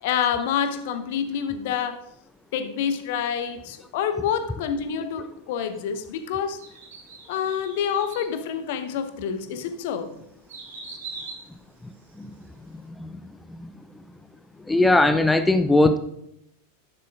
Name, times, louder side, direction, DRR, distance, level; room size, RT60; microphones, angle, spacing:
voice 1, 0.0-2.0 2.5-6.6 7.3-10.1, left 8 dB, 50° left, 0.9 m, -27 dB
sound 1, 6.6-8.4 9.0-9.1 9.6-12.4 12.8-12.9, right 4 dB, 60° right, 3.0 m, -42 dB
voice 2, 14.7-16.0, left 2 dB, 5° left, 0.4 m, -19 dB
11.0 x 10.5 x 2.4 m
figure-of-eight pair, 90°, 0 cm